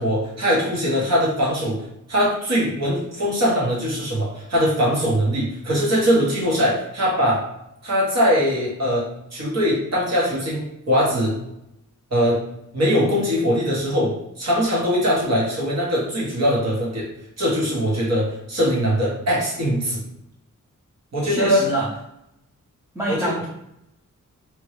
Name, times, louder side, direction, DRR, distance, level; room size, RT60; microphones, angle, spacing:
voice 1, 0.0-1.8 2.1-7.5 7.8-11.4 12.1-12.4 12.7-17.1 17.4-20.0 21.1-21.6 23.1-23.3, equal, 55° right, -5 dB, 1.3 m, -21 dB
voice 2, 21.2-21.9 22.9-23.5, right 1 dB, 10° right, -5 dB, 0.5 m, -25 dB
3.0 x 2.6 x 3.2 m, 0.80 s
wide cardioid pair, 140°, 32 cm